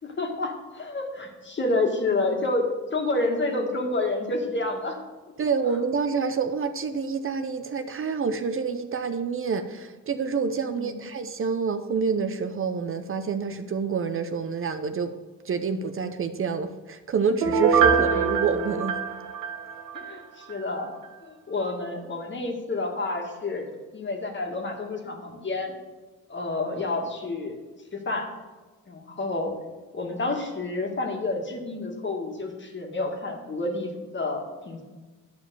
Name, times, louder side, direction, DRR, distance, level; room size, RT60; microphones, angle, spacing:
voice 1, 0.0-2.6 2.9-5.0 10.7-11.0 19.9-20.9 21.2-25.7 26.3-27.6 27.9-28.3 28.9-29.5 29.9-34.8, left 2 dB, 35° left, 2 dB, 1.8 m, -29 dB
voice 2, 5.4-15.1 15.4-19.0, right 5 dB, 45° right, 9 dB, 0.7 m, -27 dB
Piano, 17.4-20.1 20.5-20.6, right 6 dB, 90° right, 1.1 m, -23 dB
10.5 x 5.0 x 6.9 m, 1.3 s
cardioid pair, 95°, 31 cm